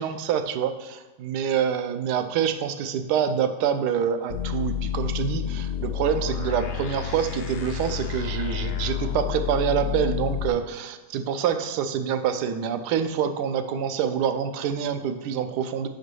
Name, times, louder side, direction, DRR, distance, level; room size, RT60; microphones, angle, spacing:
voice 1, 0.0-15.9, right 8 dB, 80° right, 9 dB, 1.1 m, -26 dB
sound 1, 4.3-10.5, left 9 dB, 65° left, 0.7 m, -30 dB
5.4 x 5.0 x 6.2 m, 1.2 s
omnidirectional pair, 1.8 m